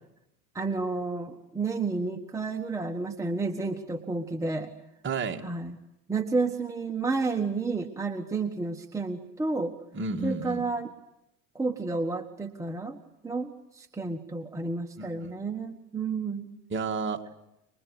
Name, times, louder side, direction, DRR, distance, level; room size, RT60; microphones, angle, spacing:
voice 1, 0.5-4.7 5.4-5.8 6.1-9.7 10.2-10.9 11.5-13.0 13.2-16.5, right 3 dB, 5° right, 3 dB, 1.5 m, -31 dB
voice 2, 5.0-5.4 9.9-10.6 15.0-15.1 16.7-17.4, right 4 dB, 25° right, 3 dB, 2.3 m, -31 dB
29.5 x 24.0 x 8.3 m, 0.87 s
hypercardioid pair, 105°, 46 cm